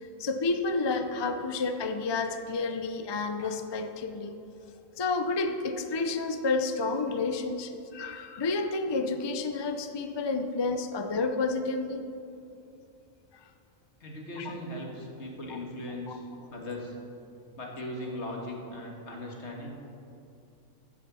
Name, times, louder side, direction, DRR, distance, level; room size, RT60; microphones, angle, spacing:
voice 1, 0.2-4.4 5.0-12.1 14.4-14.5 16.1-16.2, left 3 dB, 40° left, 7 dB, 0.3 m, -30 dB
voice 2, 14.0-16.2 16.5-16.9 17.5-19.8, left 1 dB, 55° left, 0 dB, 2.1 m, -38 dB
15.0 x 7.1 x 6.2 m, 2.6 s
omnidirectional pair, 1.4 m